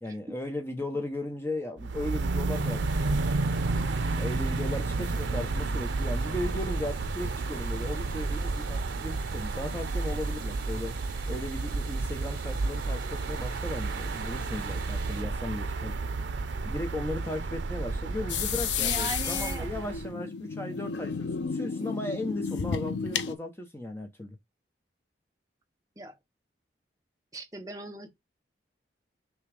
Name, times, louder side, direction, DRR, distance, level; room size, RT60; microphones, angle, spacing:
voice 1, 0.0-3.2 4.2-11.0 11.3-16.1 16.6-24.4, left 1 dB, 15° left, 0.8 m, -36 dB
sound 1, 1.8-20.1, right 3 dB, 85° right, 0.5 m, -31 dB
sound 2, 2.5-15.2, right 7 dB, 50° right, 2.4 m, -48 dB
sound 3, 18.3-23.3, left 6 dB, 80° left, 0.5 m, -32 dB
voice 2, 18.8-19.7 26.0-26.1 27.3-28.1, right 1 dB, 20° right, 0.9 m, -38 dB
6.0 x 2.3 x 3.3 m
head